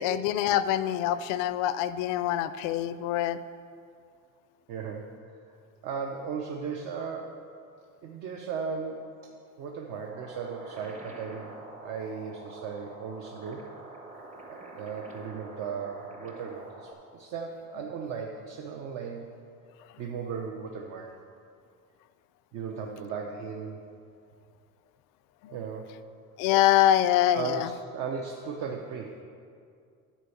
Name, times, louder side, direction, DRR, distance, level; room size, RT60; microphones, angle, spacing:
voice 1, 0.0-3.4 25.4-25.5 26.4-27.7, left 12 dB, 85° left, 14 dB, 0.5 m, -25 dB
voice 2, 4.7-5.1 5.4-5.5 5.8-7.4 8.0-9.3 9.6-13.7 14.5-19.3 20.0-21.1 22.5-23.8 25.5-26.0 27.3-29.2, right 6 dB, 60° right, 1 dB, 0.7 m, -36 dB
sound 1, 9.9-16.9, right 2 dB, 25° right, 0.9 m, -47 dB
10.0 x 4.3 x 7.0 m, 2.3 s
cardioid pair, 160°, 31 cm